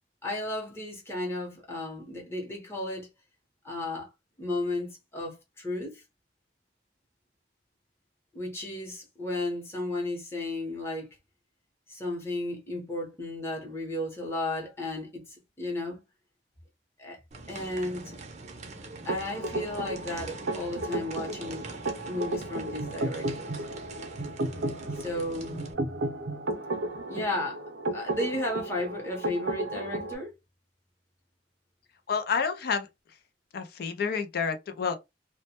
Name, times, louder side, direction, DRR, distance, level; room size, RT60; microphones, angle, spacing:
voice 1, 0.2-3.1 3.6-4.1 4.4-6.0 8.3-11.1 11.9-16.0 17.0-17.2 17.5-18.2 19.0-21.8 22.0-23.6 24.9-25.6 27.1-27.6 27.9-30.3, left 1 dB, 15° left, 0.7 m, -34 dB
sound 1, 17.3-25.7, right 3 dB, 40° right, 0.5 m, -43 dB
sound 2, 19.1-30.2, right 2 dB, 90° right, 0.5 m, -34 dB
voice 2, 32.1-32.9 33.5-35.0, left 6 dB, 60° left, 0.4 m, -29 dB
2.1 x 2.1 x 2.8 m
head